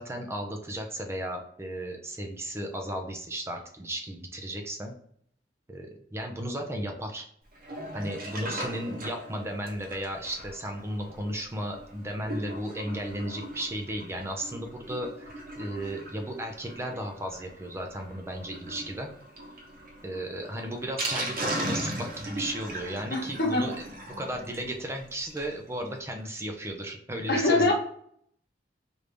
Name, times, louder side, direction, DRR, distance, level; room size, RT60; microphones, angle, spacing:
voice 1, 0.0-4.9 5.7-7.3 7.9-19.1 20.0-23.8 24.2-27.7, right 1 dB, 15° right, 3 dB, 0.4 m, -35 dB
Sink (filling or washing), 7.5-25.6 25.9-26.0 26.2-26.3 26.6-26.7, right 1 dB, 55° right, 0.9 m, -39 dB
voice 2, 23.1-23.7 27.3-27.7, left 2 dB, 60° left, -1 dB, 1.1 m, -23 dB
3.3 x 2.6 x 3.3 m, 0.64 s
head